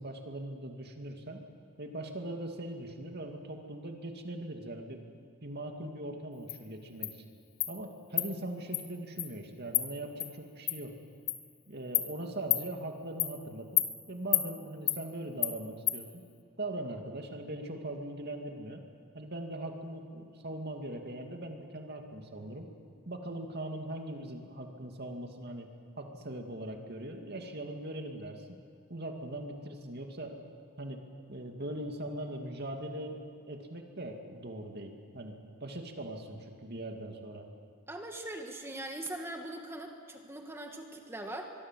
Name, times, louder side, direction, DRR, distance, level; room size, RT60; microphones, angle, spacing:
voice 1, 0.0-1.4 1.8-5.0 5.4-7.2 7.7-10.9 11.7-13.7 14.1-16.2 16.6-18.8 19.1-22.7 23.1-25.7 26.0-28.5 28.9-30.4 30.8-31.0 31.3-33.2 33.5-37.5, right 1 dB, 45° right, 3 dB, 2.5 m, -40 dB
Insect, 6.5-6.6 7.0-7.1 7.6-7.7 8.2-8.3 8.7-8.8 9.2-9.3 9.7-9.8 10.2-10.3 10.7-10.8 11.3-11.4 11.9-12.1 12.5-12.6 13.2-13.3 13.8-13.9 14.3-14.5 14.9-15.0 15.4-15.5 15.9-16.0, left 13 dB, 65° left, 1.8 m, -28 dB
voice 2, 37.9-41.5, right 1 dB, 10° right, 3 dB, 1.6 m, -41 dB
23.5 x 23.5 x 7.6 m, 2.4 s
head